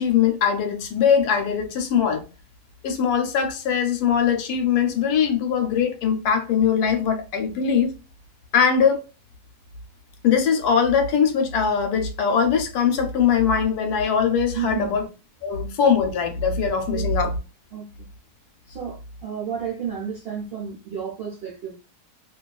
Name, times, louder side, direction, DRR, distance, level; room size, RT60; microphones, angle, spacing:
voice 1, 0.0-2.3 2.8-7.9 8.5-9.0 10.2-15.1 15.4-17.3, left 7 dB, 75° left, 1.1 m, -21 dB
voice 2, 14.5-14.9 16.9-17.1 17.7-18.1 18.7-21.7, right 7 dB, 70° right, 0.5 m, -31 dB
2.6 x 2.3 x 2.3 m
omnidirectional pair, 1.7 m